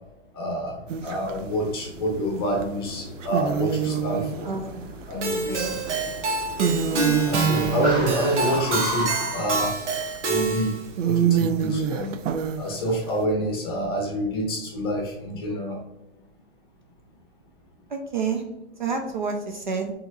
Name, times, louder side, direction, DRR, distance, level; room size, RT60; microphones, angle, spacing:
voice 1, 0.3-0.8 1.0-4.5 5.1-5.8 6.9-9.8 10.2-10.7 11.0-12.2 12.6-15.8, equal, 20° left, -1 dB, 0.7 m, -27 dB
Car, 0.8-9.7, equal, 10° right, 1.3 m, -36 dB
sound 1, 0.9-1.4 2.6-2.7 3.2-6.0 6.4-9.4 10.0-10.2 10.6-10.7 11.0-13.2, right 7 dB, 90° right, 0.6 m, -26 dB
Keyboard (musical), 5.2-10.9, right 3 dB, 70° right, 1.2 m, -27 dB
voice 2, 17.9-18.4 18.8-19.9, right 5 dB, 40° right, 4 dB, 0.5 m, -28 dB
6.2 x 3.0 x 2.5 m, 0.94 s
hypercardioid pair, 180°, 36 cm